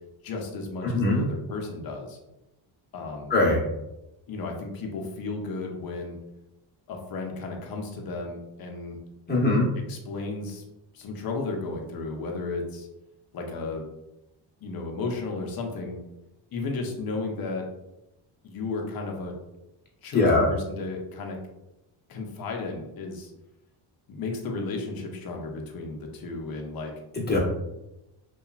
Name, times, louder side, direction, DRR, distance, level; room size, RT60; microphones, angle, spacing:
voice 1, 0.2-2.2 2.9-3.3 4.3-6.2 6.9-9.0 9.9-10.6 10.9-12.9 13.3-13.9 14.6-16.0 16.5-17.7 18.4-19.3 20.0-21.4 22.1-23.3 24.1-26.9, left 3 dB, 50° left, 2 dB, 0.6 m, -33 dB
voice 2, 0.8-1.2 3.3-3.6 9.3-9.7 20.1-20.5 27.1-27.4, left 2 dB, 20° left, -3 dB, 0.8 m, -21 dB
2.8 x 2.3 x 2.3 m, 0.92 s
cardioid pair, 95°, 48 cm